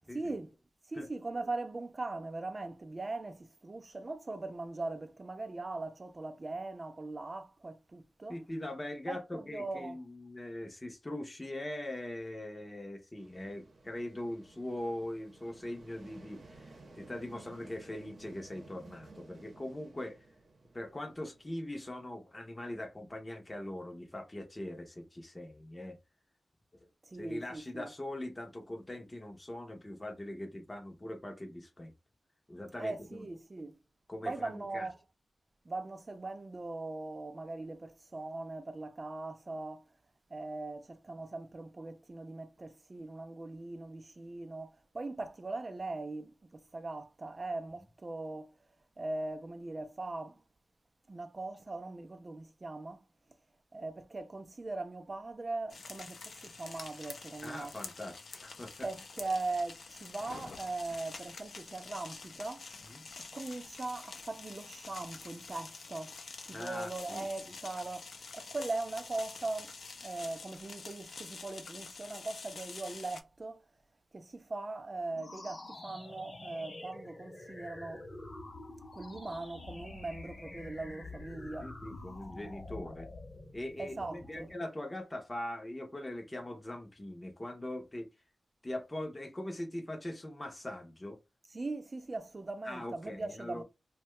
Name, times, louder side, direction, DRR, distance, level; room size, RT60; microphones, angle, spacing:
voice 1, 0.1-0.6 0.9-8.4 9.1-10.0 27.0-27.9 32.8-33.8 34.2-35.0 35.7-39.9 40.3-48.6 49.0-50.4 51.1-53.0 53.7-57.7 58.8-62.7 63.2-66.1 66.5-69.7 70.0-73.6 74.1-78.0 78.9-81.7 83.8-84.5 91.5-93.6, right 2 dB, 30° right, 0.4 m, -40 dB
voice 2, 8.3-20.3 20.7-26.0 27.2-31.9 32.5-33.2 34.1-34.9 57.4-58.9 62.8-63.0 66.5-67.5 81.6-83.1 83.5-88.1 88.6-91.2 92.6-93.6, left 1 dB, 20° left, 0.7 m, -41 dB
sound 1, 13.2-21.9, right 3 dB, 60° right, 0.8 m, -56 dB
sound 2, 55.7-73.2, left 4 dB, 65° left, 0.5 m, -48 dB
sound 3, 75.1-84.6, left 2 dB, 40° left, 0.9 m, -47 dB
2.7 x 2.2 x 3.0 m
wide cardioid pair, 125°, 0 cm